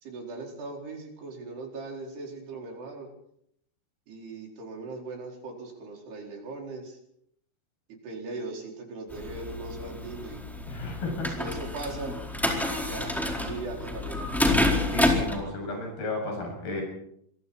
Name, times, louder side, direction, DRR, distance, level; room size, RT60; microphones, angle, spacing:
voice 1, 0.0-3.1 4.1-7.0 8.0-10.4 11.4-12.1 12.8-14.6, right 3 dB, 85° right, 1 dB, 6.5 m, -39 dB
sound 1, 9.1-15.4, left 1 dB, ahead, 3.8 m, -28 dB
voice 2, 10.7-11.3 14.9-16.8, left 2 dB, 70° left, 1 dB, 9.3 m, -33 dB
26.5 x 22.5 x 4.4 m, 0.70 s
omnidirectional pair, 4.6 m